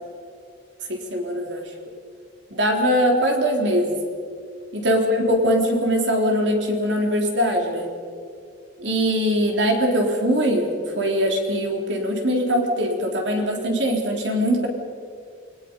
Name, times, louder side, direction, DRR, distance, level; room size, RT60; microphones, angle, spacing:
voice 1, 0.9-1.6 2.5-4.0 4.7-7.9 8.8-14.7, equal, 75° right, 2 dB, 3.6 m, -22 dB
29.0 x 21.5 x 5.4 m, 2.2 s
head